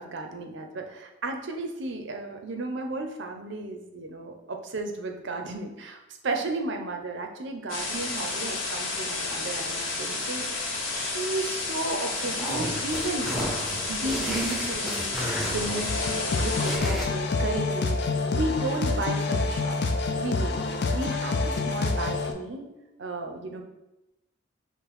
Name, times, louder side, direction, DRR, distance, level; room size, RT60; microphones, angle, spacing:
voice 1, 0.0-10.6 10.9-13.3 13.9-15.1 15.4-16.1 16.4-18.0 18.3-19.8 20.2-20.6 20.9-22.7 23.0-23.6, right 2 dB, 60° right, 4 dB, 0.6 m, -33 dB
sound 1, 7.7-16.8, left 3 dB, 80° left, 1.0 m, -31 dB
sound 2, 12.2-17.1, equal, ahead, 0.7 m, -33 dB
sound 3, 15.9-22.3, left 3 dB, 55° left, 0.4 m, -27 dB
5.6 x 2.1 x 4.2 m, 0.97 s
head